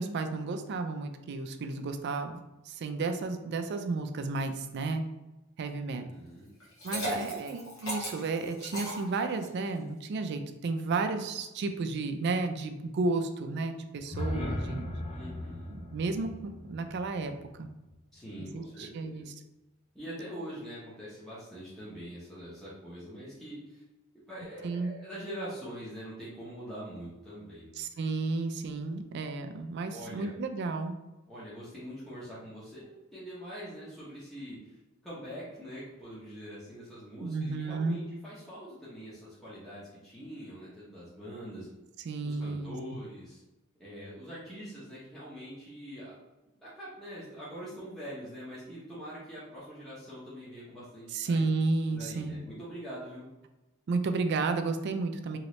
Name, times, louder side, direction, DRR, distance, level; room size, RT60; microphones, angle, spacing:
voice 1, 0.0-2.4 2.7-5.0 5.6-6.0 6.8-15.0 15.7-17.3 17.6-17.7 18.4-19.3 24.6-24.9 27.8-30.9 37.2-38.0 42.1-42.7 51.1-52.4 53.9-55.4, right 3 dB, 55° right, 7 dB, 0.4 m, -32 dB
voice 2, 5.9-6.5 6.9-7.2 15.1-15.8 18.1-19.3 19.9-23.8 24.3-27.7 29.9-30.4 31.3-34.8 35.0-41.7 42.2-43.4 43.8-46.1 46.6-51.4 51.9-53.3, equal, ahead, -11 dB, 0.8 m, -44 dB
Liquid, 6.6-9.7, equal, 75° left, 1.4 m, -37 dB
sound 1, 13.9-18.0, left 1 dB, 30° left, 0.5 m, -38 dB
3.0 x 2.9 x 3.0 m, 1.0 s
head